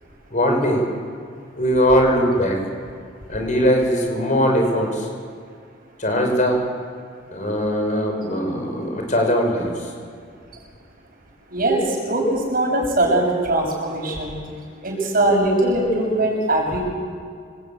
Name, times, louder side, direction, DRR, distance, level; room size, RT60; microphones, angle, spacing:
voice 1, 0.3-0.9 1.6-2.6 3.3-5.1 6.0-6.7 7.3-9.9, equal, 45° left, 2 dB, 6.0 m, -20 dB
voice 2, 11.5-11.8 12.1-12.2 12.5-14.4 14.8-16.9, right 1 dB, 50° right, 1 dB, 6.8 m, -20 dB
29.0 x 19.5 x 9.2 m, 2.2 s
head